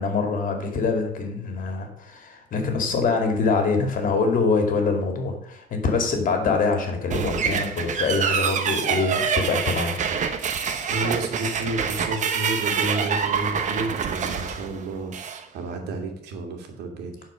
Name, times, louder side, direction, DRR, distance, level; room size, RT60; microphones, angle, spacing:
voice 1, 0.0-10.0, left 4 dB, 55° left, 4 dB, 2.3 m, -24 dB
sound 1, 7.1-15.4, right 6 dB, 45° right, 1.0 m, -26 dB
voice 2, 10.9-17.1, right 2 dB, 80° right, 4 dB, 2.1 m, -31 dB
10.5 x 4.6 x 6.2 m, 0.73 s
cardioid pair, 110°, 17 cm